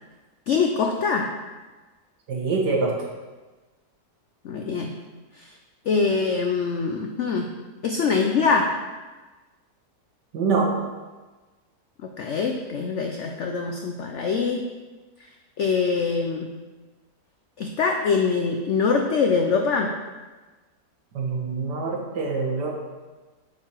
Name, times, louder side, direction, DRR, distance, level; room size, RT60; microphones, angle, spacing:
voice 1, 0.5-1.3 4.4-5.0 5.3-5.5 5.9-7.5 7.8-8.7 12.2-14.7 15.6-16.5 17.6-20.0, left 5 dB, 80° left, 3 dB, 0.6 m, -23 dB
voice 2, 2.3-2.9 10.3-10.7 21.1-22.8, right 4 dB, 70° right, -2 dB, 1.9 m, -24 dB
8.5 x 4.6 x 4.5 m, 1.3 s
omnidirectional pair, 1.9 m